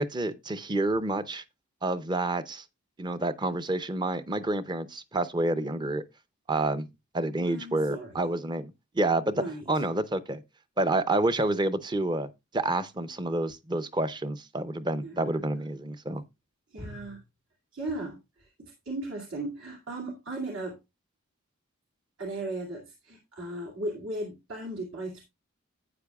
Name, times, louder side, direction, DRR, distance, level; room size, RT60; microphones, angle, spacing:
voice 1, 0.0-1.4 1.8-2.6 3.0-6.0 6.5-6.9 7.1-10.4 10.8-16.2, right 2 dB, 20° right, 0.6 m, -29 dB
voice 2, 7.4-8.3 9.3-9.8 15.0-15.4 16.7-17.2 17.7-20.8 22.2-25.2, right 2 dB, 70° right, 2.5 m, -37 dB
12.0 x 8.9 x 2.3 m
head